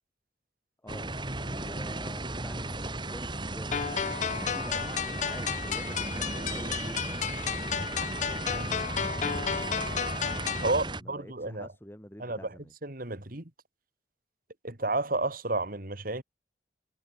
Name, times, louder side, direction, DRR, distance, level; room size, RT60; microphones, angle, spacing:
voice 1, 0.8-3.9 4.3-7.2 8.4-9.4 10.6-12.7, equal, 15° left, 3.0 m, -48 dB
sound 1, 0.9-11.0, right 2 dB, 25° right, 3.5 m, -35 dB
sound 2, 3.7-10.7, left 8 dB, 40° left, 0.4 m, -33 dB
voice 2, 10.6-11.7 12.2-12.4 12.8-13.5 14.6-16.2, right 2 dB, 50° right, 2.5 m, -31 dB
head